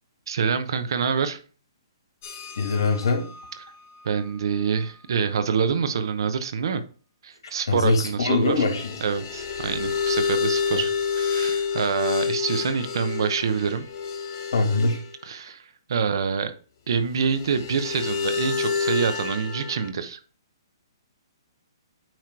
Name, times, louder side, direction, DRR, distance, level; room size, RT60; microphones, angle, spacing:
voice 1, 0.3-1.4 4.0-6.8 7.2-8.6 9.0-13.9 15.2-15.6 15.9-16.5 16.9-20.2, right 6 dB, 65° right, 10 dB, 0.9 m, -26 dB
sound 1, 2.2-4.4 4.7-4.9 8.4-15.2 17.1-19.9, left 6 dB, 40° left, 1.1 m, -29 dB
voice 2, 2.6-3.2 7.7-8.9 10.7-10.8 14.5-15.0, left 3 dB, 75° left, 3 dB, 2.3 m, -22 dB
9.0 x 3.1 x 4.6 m, 0.40 s
hypercardioid pair, 155°, 3 cm